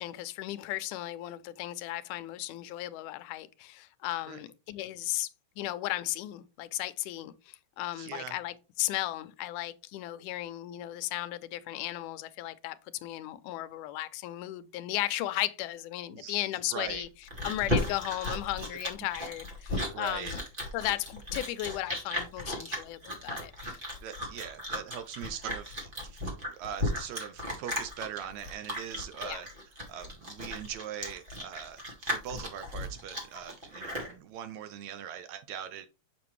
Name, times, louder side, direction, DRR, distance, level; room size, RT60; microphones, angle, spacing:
voice 1, 0.0-5.3 5.6-12.8 13.0-17.1 17.4-20.4 20.7-23.8 29.2-29.4, left 15 dB, 85° left, 2.1 m, -35 dB
voice 2, 7.9-8.4 16.1-16.4 16.7-17.1 19.9-20.3 24.0-29.5 29.9-35.9, right 9 dB, 80° right, 1.7 m, -41 dB
Chewing mastication, 16.9-34.1, left 1 dB, 25° right, 1.4 m, -35 dB
7.2 x 6.0 x 3.1 m
omnidirectional pair, 3.6 m